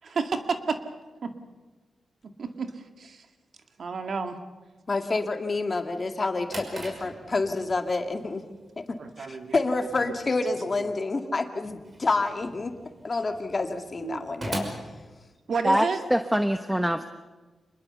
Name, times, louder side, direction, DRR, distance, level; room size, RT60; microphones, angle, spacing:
voice 1, 0.0-0.8 2.4-2.7 3.0-3.2 3.8-4.4 9.0-9.9 10.8-10.9 14.0-14.2 15.5-16.0, right 5 dB, 65° right, 7 dB, 2.2 m, -30 dB
voice 2, 4.9-8.4 8.8-12.8 13.0-14.7, left 3 dB, 40° left, 6 dB, 2.2 m, -28 dB
Drawer open or close, 6.2-15.8, right 1 dB, 40° right, 5.6 m, -42 dB
voice 3, 15.6-17.1, equal, 5° right, 9 dB, 1.0 m, -24 dB
26.0 x 21.5 x 7.0 m, 1.3 s
cardioid pair, 80°, 0 cm